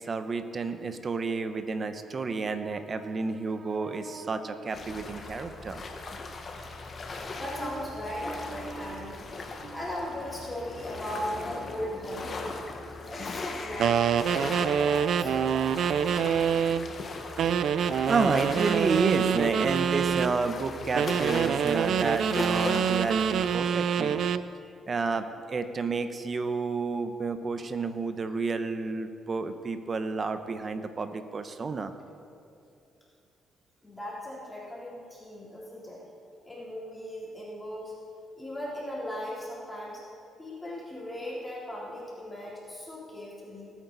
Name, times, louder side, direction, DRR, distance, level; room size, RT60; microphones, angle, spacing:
voice 1, 0.0-5.8 7.6-7.9 8.2-9.8 18.1-24.2 24.9-31.9, right 4 dB, 40° right, 9 dB, 0.9 m, -31 dB
sound 1, 4.7-23.6, left 3 dB, 45° left, 1.5 m, -39 dB
voice 2, 6.5-9.2 9.7-12.6 13.1-15.9 33.8-36.0 36.4-37.9 38.4-40.0 40.4-43.7, left 1 dB, 15° left, -6 dB, 3.5 m, -38 dB
sound 2, 6.6-14.8, left 4 dB, 65° left, 1.5 m, -49 dB
sound 3, 13.8-16.9 17.4-20.3 20.9-24.5, right 7 dB, 70° right, 0.4 m, -26 dB
19.5 x 8.9 x 4.1 m, 2.7 s
cardioid pair, 90°, 0 cm